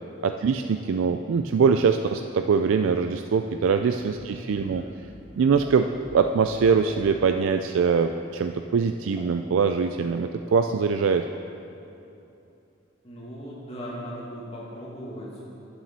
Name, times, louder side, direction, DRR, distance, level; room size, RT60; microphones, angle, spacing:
voice 1, 0.2-4.8 5.4-11.2, right 5 dB, 90° right, 7 dB, 0.4 m, -23 dB
sound 1, 3.7-7.1, equal, 40° right, 2.2 m, -49 dB
voice 2, 4.1-4.9 13.0-15.5, equal, 30° left, -5 dB, 2.1 m, -39 dB
sound 2, 5.6-6.9 7.2-11.6, equal, 5° right, 2.1 m, -49 dB
9.2 x 6.9 x 7.4 m, 2.8 s
head